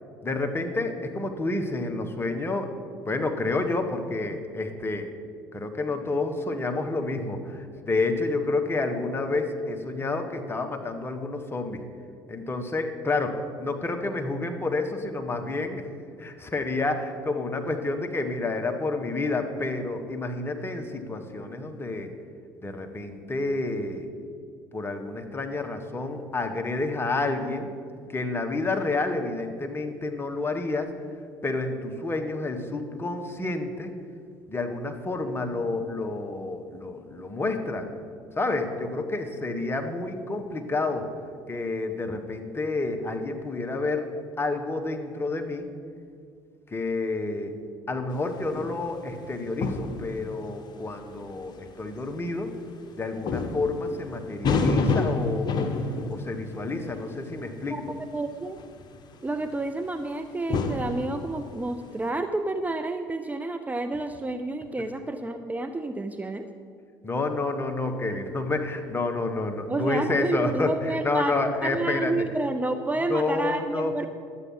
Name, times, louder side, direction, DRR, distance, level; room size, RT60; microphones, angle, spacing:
voice 1, 0.2-2.7 3.1-5.1 5.5-11.8 12.3-15.9 16.2-22.1 22.6-24.1 24.7-27.7 28.1-30.9 31.4-33.9 34.5-37.8 38.3-41.1 41.5-44.1 44.4-45.7 46.7-47.5 47.9-52.5 53.0-55.8 56.1-57.8 67.0-72.1 73.1-73.9, left 2 dB, 25° left, 5 dB, 1.4 m, -29 dB
sound 1, 48.1-48.9 49.6-50.5 51.6-51.7 52.7-52.8 53.3-57.5 58.5-59.5 60.5-61.8, left 4 dB, 45° left, 1.2 m, -28 dB
voice 2, 57.7-58.6 59.2-66.5 69.7-71.3 71.6-74.1, right 2 dB, 15° right, 7 dB, 0.6 m, -30 dB
11.5 x 8.3 x 5.7 m, 2.3 s
hypercardioid pair, 60°, 10 cm